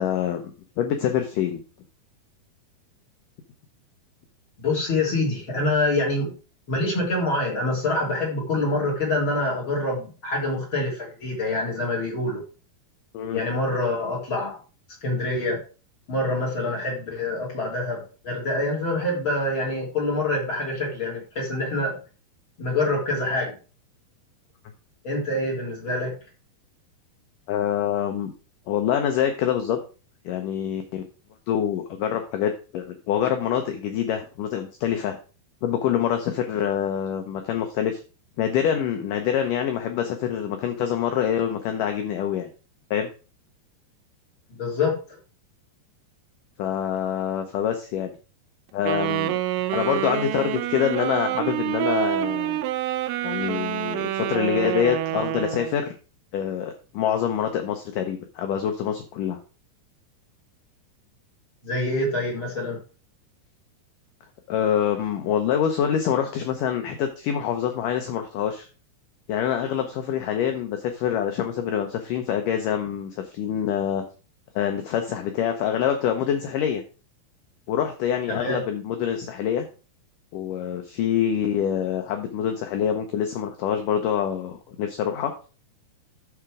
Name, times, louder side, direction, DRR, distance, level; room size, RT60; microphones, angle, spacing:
voice 1, 0.0-1.6 13.1-13.4 27.5-28.3 28.7-29.8 30.3-31.0 31.5-35.2 35.6-38.0 38.4-42.5 42.9-43.1 46.6-48.1 48.7-49.3 49.7-52.6 53.2-55.9 56.3-59.4 64.5-68.7 69.3-74.0 74.6-76.8 77.7-79.7 80.3-85.3, left 9 dB, 70° left, 5 dB, 2.2 m, -25 dB
voice 2, 4.6-6.3 6.7-12.4 13.3-14.6 15.0-15.6 16.1-22.0 22.6-23.5 25.0-26.1 44.5-45.0 61.6-62.8 78.3-78.6, left 2 dB, 35° left, -3 dB, 3.6 m, -26 dB
Wind instrument woodwind instrument, 48.8-55.8, right 13 dB, 80° right, 2.0 m, -27 dB
13.0 x 4.4 x 4.9 m, 0.35 s
omnidirectional pair, 4.5 m